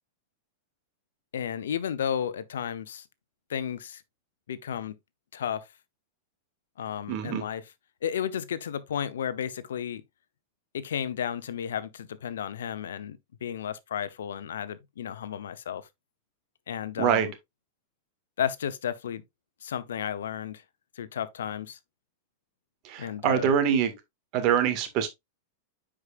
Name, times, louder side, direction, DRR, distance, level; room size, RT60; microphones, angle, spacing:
voice 1, 1.3-3.1 3.5-4.0 4.5-5.0 5.3-5.7 6.8-7.7 8.0-10.0 10.7-15.9 16.7-17.3 18.4-19.2 19.6-20.6 21.0-21.8 23.0-23.5, left 9 dB, 85° left, 0.7 m, -33 dB
voice 2, 7.1-7.4 17.0-17.3 22.8-23.9 24.3-25.1, right 8 dB, 45° right, 1.8 m, -24 dB
9.7 x 4.9 x 2.5 m
hypercardioid pair, 120°, 0 cm